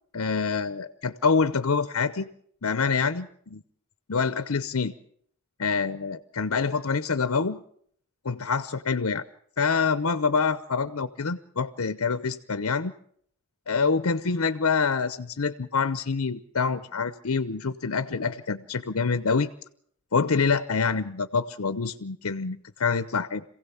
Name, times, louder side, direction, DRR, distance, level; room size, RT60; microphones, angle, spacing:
voice 1, 0.1-2.3 2.6-3.6 4.1-4.9 5.6-7.6 8.2-9.2 9.6-12.9 13.7-19.5 20.1-23.4, left 5 dB, 85° left, 13 dB, 0.8 m, -26 dB
27.0 x 16.5 x 7.1 m, 0.66 s
head